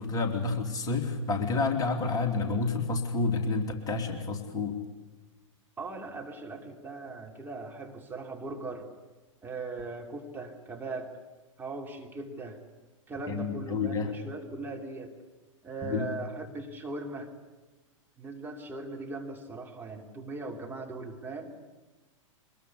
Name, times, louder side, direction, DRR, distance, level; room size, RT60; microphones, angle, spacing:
voice 1, 0.0-4.8 13.3-14.1 15.8-16.1, left 3 dB, 20° left, 3 dB, 3.2 m, -29 dB
voice 2, 5.8-8.9 9.4-11.2 11.6-12.6 13.1-15.1 15.6-17.3 18.2-21.6, right 3 dB, 10° right, 1 dB, 3.1 m, -39 dB
24.0 x 21.5 x 8.4 m, 1.2 s
figure-of-eight pair, 100°, 17 cm